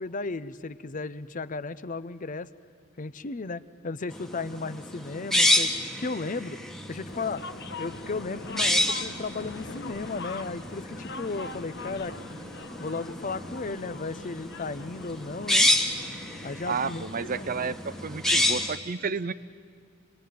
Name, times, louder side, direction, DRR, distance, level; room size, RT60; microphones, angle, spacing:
voice 1, 0.0-2.5 3.0-5.7 6.0-6.6 6.9-7.4 7.8-12.4 12.8-15.7 16.4-17.1 17.3-17.6, left 3 dB, 40° left, 14 dB, 0.6 m, -35 dB
sound 1, 4.1-18.8, left 1 dB, ahead, 1.4 m, -29 dB
sound 2, 7.1-17.8, left 3 dB, 55° left, 1.2 m, -43 dB
voice 2, 16.7-19.3, right 5 dB, 40° right, 15 dB, 0.6 m, -31 dB
26.0 x 19.5 x 9.3 m, 2.1 s
head